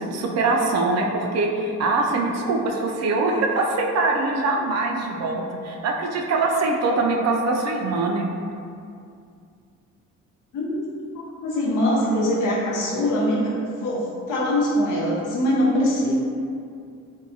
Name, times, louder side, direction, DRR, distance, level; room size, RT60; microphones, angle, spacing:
voice 1, 0.0-8.3, right 3 dB, 60° right, 1 dB, 0.4 m, -23 dB
voice 2, 10.5-10.9 11.4-16.1, left 1 dB, 85° left, -5 dB, 0.7 m, -23 dB
2.6 x 2.2 x 2.7 m, 2.4 s
cardioid pair, 90°, 30 cm